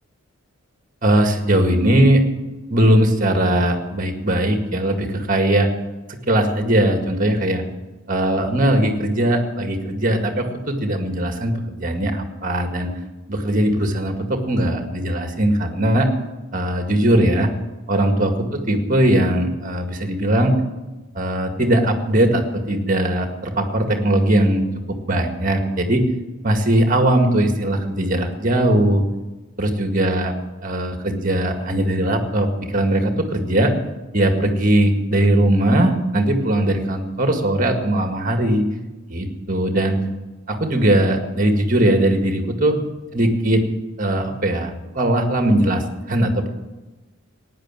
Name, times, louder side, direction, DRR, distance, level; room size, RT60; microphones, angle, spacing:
voice 1, 1.0-2.2 2.7-5.7 6.3-7.6 8.1-12.9 13.3-16.1 16.5-17.5 17.9-20.5 21.1-24.6 24.9-26.0 26.4-29.0 29.6-30.3 30.6-33.7 34.1-38.6 39.1-40.0 40.5-42.8 43.1-43.6 44.0-45.8 46.1-46.5, right 1 dB, 40° right, 5 dB, 2.0 m, -19 dB
16.0 x 10.0 x 7.5 m, 1.1 s
head